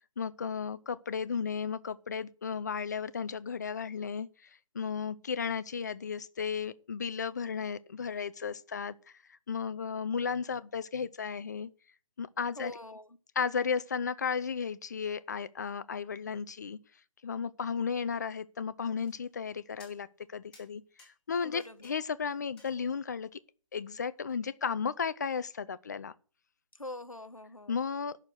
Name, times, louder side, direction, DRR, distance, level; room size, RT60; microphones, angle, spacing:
voice 1, 0.2-4.3 4.7-9.0 9.5-11.7 12.2-12.7 13.4-16.8 17.2-20.8 21.3-23.4 23.7-26.1 27.7-28.2, left 6 dB, 35° left, 0.6 m, -34 dB
voice 2, 12.6-13.2 21.4-21.8 26.8-27.8, left 1 dB, 85° left, 1.2 m, -43 dB
sound 1, 19.0-19.5 19.8-20.3 20.5-22.0 22.3-23.2 24.3-24.4, left 3 dB, 5° left, 2.5 m, -60 dB
10.5 x 6.6 x 7.7 m
figure-of-eight pair, 150°, 17 cm